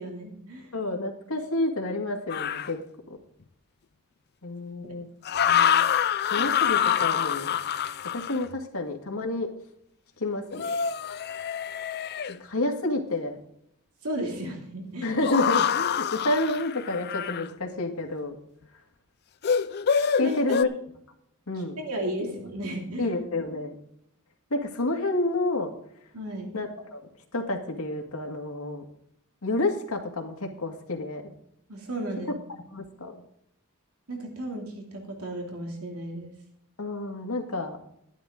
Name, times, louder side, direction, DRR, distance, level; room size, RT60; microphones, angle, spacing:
voice 1, 0.0-0.7 5.4-5.7 14.0-15.2 20.0-20.4 21.5-23.1 26.1-26.5 31.7-32.6 34.1-36.3, right 1 dB, 75° right, 1 dB, 2.7 m, -34 dB
voice 2, 0.7-2.8 4.4-5.1 6.3-7.5 8.1-9.5 10.2-10.7 12.3-13.4 15.0-18.4 20.2-20.7 21.5-21.8 23.0-23.8 24.5-25.7 26.5-27.0 27.3-28.8 29.4-31.3 32.7-33.2 36.8-37.8, left 2 dB, 70° left, 3 dB, 2.1 m, -29 dB
sound 1, 2.3-2.7 5.2-8.5 10.5-12.4 15.2-17.5 19.4-20.6, left 8 dB, 45° left, 0.5 m, -26 dB
12.5 x 11.5 x 3.8 m, 0.71 s
head